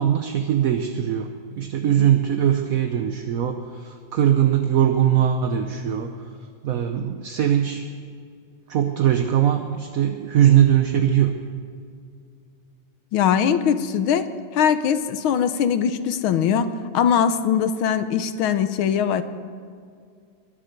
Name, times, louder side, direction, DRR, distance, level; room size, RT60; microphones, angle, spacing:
voice 1, 0.0-6.1 6.6-7.8 8.7-11.3, right 10 dB, 55° right, 6 dB, 1.0 m, -21 dB
voice 2, 13.1-19.2, left 8 dB, 85° left, 11 dB, 1.7 m, -21 dB
22.5 x 7.6 x 8.0 m, 2.2 s
omnidirectional pair, 2.2 m